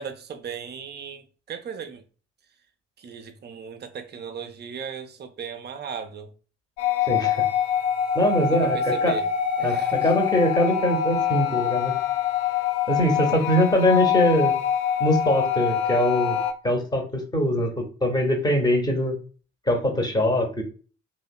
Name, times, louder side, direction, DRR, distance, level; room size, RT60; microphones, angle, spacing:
voice 1, 0.0-2.0 3.0-6.3 8.5-9.3 9.6-10.2, right 6 dB, 30° right, 0.5 m, -37 dB
sound 1, 6.8-16.5, left 9 dB, 65° left, 0.5 m, -24 dB
voice 2, 7.1-7.4 8.1-9.2 9.6-11.9 12.9-14.5 15.0-16.4 16.6-19.2 19.7-20.6, equal, 10° left, 0.8 m, -22 dB
2.8 x 2.1 x 2.3 m
figure-of-eight pair, 45°, 34 cm